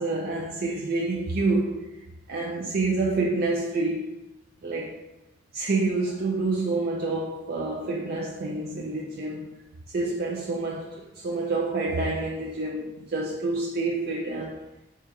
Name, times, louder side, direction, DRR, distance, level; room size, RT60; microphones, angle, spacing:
voice 1, 0.0-4.2 4.6-5.0 5.5-9.5 9.9-14.6, right 3 dB, 50° right, 0.4 m, -28 dB
4.3 x 2.2 x 3.5 m
head